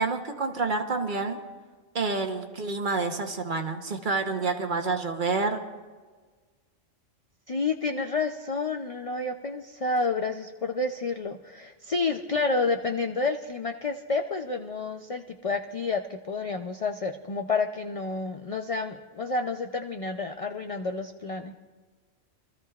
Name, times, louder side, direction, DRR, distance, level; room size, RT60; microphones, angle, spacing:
voice 1, 0.0-1.4 1.9-5.6, right 4 dB, 45° right, 5 dB, 1.0 m, -28 dB
voice 2, 7.5-21.5, left 3 dB, 60° left, 5 dB, 0.3 m, -29 dB
26.0 x 14.0 x 2.4 m, 1.4 s
omnidirectional pair, 1.3 m